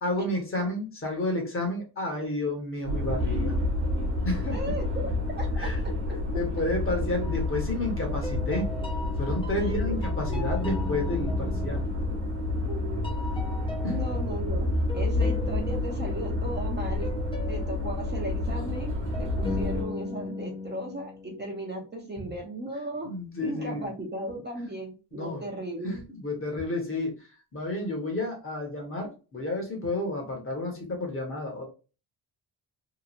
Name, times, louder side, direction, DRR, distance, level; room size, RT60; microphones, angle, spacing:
voice 1, 0.0-3.6 4.2-4.6 5.6-5.8 6.3-8.7 9.2-11.8 13.8-13.9 23.0-23.9 25.1-25.4 25.8-27.1 27.5-31.6, left 2 dB, 30° left, 1 dB, 1.1 m, -31 dB
sound 1, 2.8-19.8, left 2 dB, 45° right, 1.1 m, -29 dB
voice 2, 4.5-5.7 9.6-10.0 10.3-10.5 12.7-13.4 13.8-14.7 14.9-17.1 17.5-23.1 23.4-26.0, right 1 dB, 25° right, -1 dB, 0.7 m, -36 dB
sound 2, 7.2-7.8 8.2-12.8 13.0-21.8, left 2 dB, 15° left, 0.5 m, -39 dB
2.9 x 2.3 x 2.4 m, 0.33 s
cardioid pair, 120°, 41 cm